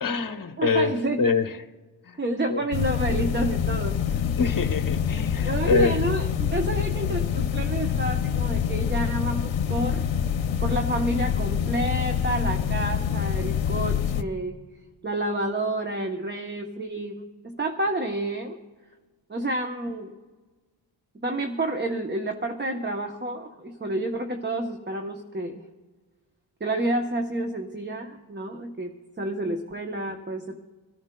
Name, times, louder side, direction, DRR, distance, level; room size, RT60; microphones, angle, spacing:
voice 1, 0.0-1.6 2.0-2.2 2.5-2.6 4.4-6.0, left 4 dB, 45° left, 7 dB, 0.9 m, -25 dB
voice 2, 0.6-1.2 2.2-4.2 5.4-10.0 10.6-14.6 15.0-18.6 19.3-20.1 21.1-25.7 26.6-30.6, right 1 dB, 25° right, 4 dB, 0.8 m, -29 dB
sound 1, 2.7-14.2, left 8 dB, 70° left, 0.8 m, -26 dB
26.0 x 13.5 x 2.2 m, 1.3 s
wide cardioid pair, 115°, 47 cm